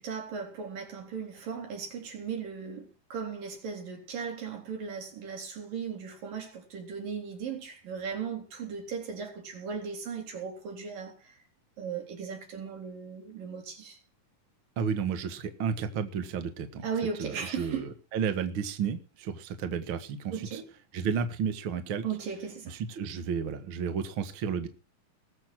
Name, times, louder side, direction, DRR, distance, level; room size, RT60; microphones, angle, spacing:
voice 1, 0.0-11.4 11.8-14.0 16.8-17.9 20.3-20.7 22.0-22.8, right 6 dB, 75° right, 5.5 m, -37 dB
voice 2, 14.8-16.9 17.2-20.6 20.9-22.0 22.7-24.7, right 6 dB, 45° right, 2.0 m, -32 dB
20.5 x 7.6 x 6.0 m
omnidirectional pair, 4.0 m